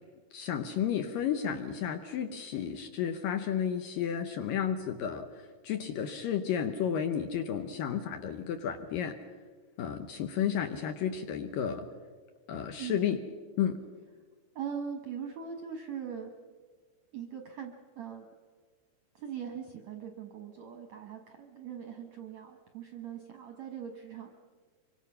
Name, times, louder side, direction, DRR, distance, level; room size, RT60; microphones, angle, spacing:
voice 1, 0.3-5.3 5.6-9.2 9.8-11.9 12.5-13.2 13.6-13.8, left 8 dB, 70° left, 6 dB, 2.3 m, -32 dB
voice 2, 12.7-13.1 14.6-16.3 17.1-18.3 19.1-24.3, right 7 dB, 65° right, 4 dB, 1.8 m, -41 dB
25.5 x 24.5 x 5.6 m, 1.5 s
omnidirectional pair, 4.9 m